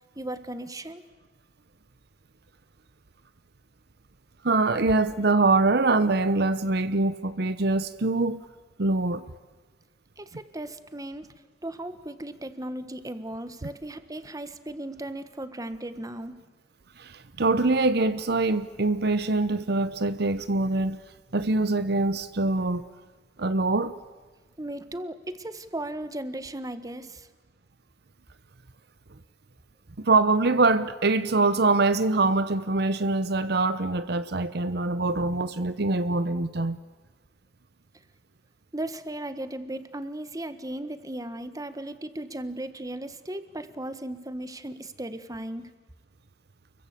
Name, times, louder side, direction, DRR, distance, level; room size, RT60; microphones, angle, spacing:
voice 1, 0.1-1.0 10.2-11.3 11.6-16.3 24.6-27.3 38.7-45.7, right 1 dB, 20° right, 1.5 m, -36 dB
voice 2, 4.4-8.4 8.8-9.2 17.0-21.0 21.3-22.9 23.4-23.9 30.0-36.8, right 3 dB, 65° right, 0.9 m, -24 dB
30.0 x 23.0 x 8.5 m
head